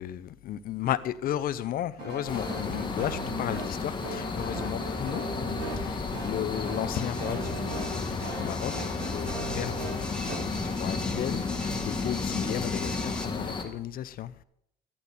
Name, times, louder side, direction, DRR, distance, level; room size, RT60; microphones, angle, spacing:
voice 1, 0.0-5.2 5.8-14.3, left 11 dB, 60° left, 0.7 m, -34 dB
sound 1, 2.0-10.3, right 2 dB, 85° right, 5.4 m, -39 dB
sound 2, 2.3-13.6, left 4 dB, 30° left, 1.7 m, -32 dB
sound 3, 6.9-13.3, left 1 dB, 5° left, 1.3 m, -42 dB
13.5 x 10.0 x 4.1 m
cardioid pair, 110°, 17 cm